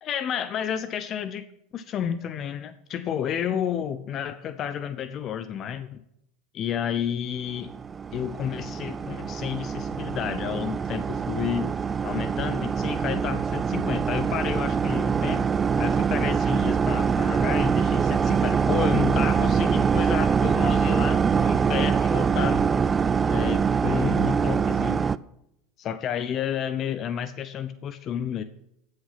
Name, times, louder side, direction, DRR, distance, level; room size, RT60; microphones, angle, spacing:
voice 1, 0.0-1.5 1.7-6.0 6.5-7.7 8.1-11.7 12.0-15.5 15.8-22.7 23.3-25.1 25.8-28.4, left 9 dB, 45° left, 13 dB, 0.8 m, -31 dB
sound 1, 7.6-25.2, right 6 dB, 25° right, 0.4 m, -24 dB
15.5 x 6.6 x 5.9 m, 0.79 s
hypercardioid pair, 85°, 0 cm